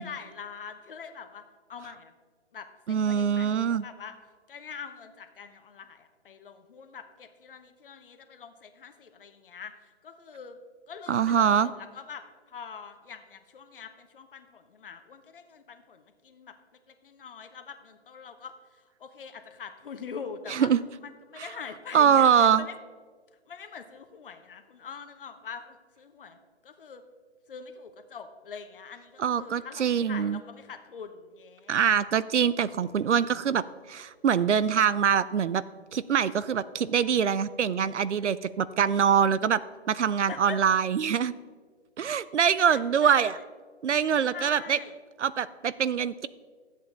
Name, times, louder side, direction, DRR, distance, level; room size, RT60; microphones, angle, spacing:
voice 1, 0.0-1.4 1.7-2.1 2.5-4.2 4.5-10.6 10.9-20.7 21.0-22.8 23.5-26.4 26.6-27.0 27.5-31.8 32.5-32.6 40.3-40.6 42.7-43.4 44.3-45.0, left 6 dB, 50° left, 7 dB, 1.1 m, -44 dB
voice 2, 2.9-3.9 11.1-11.7 20.5-20.8 21.9-22.6 29.2-30.4 31.7-33.6 33.9-35.6 35.9-39.6 39.9-41.3 42.0-43.3 43.8-44.8 45.2-46.3, right 7 dB, 85° right, 17 dB, 0.6 m, -24 dB
13.0 x 8.1 x 3.9 m, 1.5 s
hypercardioid pair, 150°, 34 cm